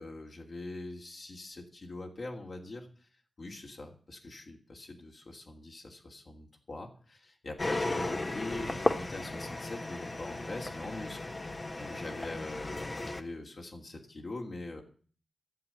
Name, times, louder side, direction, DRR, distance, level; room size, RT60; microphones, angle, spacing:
voice 1, 0.0-3.1 3.4-14.8, left 2 dB, 60° left, 0 dB, 2.8 m, -43 dB
sound 1, 7.6-13.2, left 2 dB, 35° left, 1.4 m, -35 dB
11.5 x 7.3 x 9.5 m, 0.43 s
cardioid pair, 65°, 0 cm